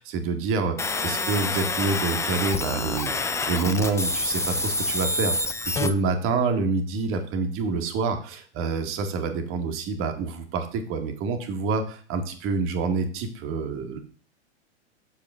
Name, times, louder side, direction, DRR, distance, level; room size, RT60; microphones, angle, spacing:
voice 1, 0.0-14.0, right 4 dB, 35° right, 6 dB, 1.7 m, -27 dB
sound 1, 0.8-5.9, left 3 dB, 10° left, 0.5 m, -27 dB
7.4 x 7.0 x 3.6 m, 0.43 s
hypercardioid pair, 110°, 35 cm